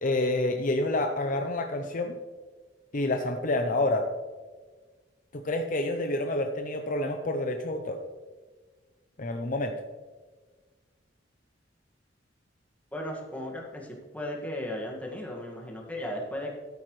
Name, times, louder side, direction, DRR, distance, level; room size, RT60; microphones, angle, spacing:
voice 1, 0.0-2.2 2.9-4.0 5.3-8.0 9.2-9.8, left 2 dB, 45° left, 5 dB, 0.7 m, -28 dB
voice 2, 12.9-16.5, left 1 dB, 10° left, -1 dB, 1.8 m, -36 dB
13.0 x 8.7 x 3.2 m, 1.4 s
head